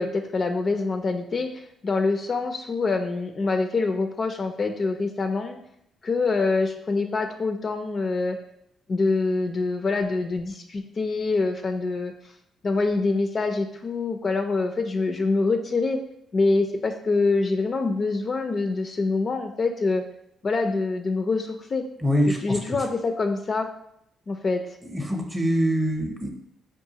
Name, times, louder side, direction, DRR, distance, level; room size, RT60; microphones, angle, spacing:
voice 1, 0.0-5.6 6.0-8.4 8.9-12.1 12.6-16.0 16.3-20.0 20.4-21.8 22.3-23.7 24.3-24.6, left 3 dB, 40° left, 5 dB, 0.3 m, -25 dB
voice 2, 22.0-22.6 24.8-26.3, equal, 15° right, 3 dB, 0.6 m, -24 dB
4.6 x 2.4 x 2.8 m, 0.75 s
cardioid pair, 90°, 0 cm